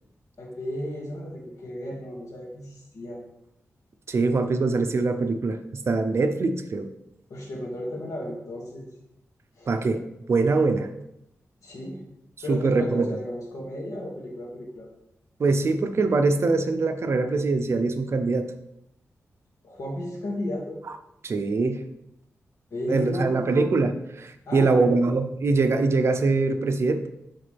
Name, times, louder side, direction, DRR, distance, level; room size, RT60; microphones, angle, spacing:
voice 1, 0.4-3.2 7.3-8.9 9.6-9.7 11.6-12.0 12.4-14.9 19.6-20.8 22.7-23.6 24.5-25.0, left 1 dB, 85° left, -2 dB, 2.1 m, -34 dB
voice 2, 4.1-6.9 9.7-10.0 10.3-10.9 12.5-13.1 15.4-18.5 21.2-21.9 22.9-27.1, right 3 dB, 55° right, 8 dB, 0.6 m, -23 dB
11.0 x 3.8 x 3.5 m, 0.83 s
wide cardioid pair, 90°, 5 cm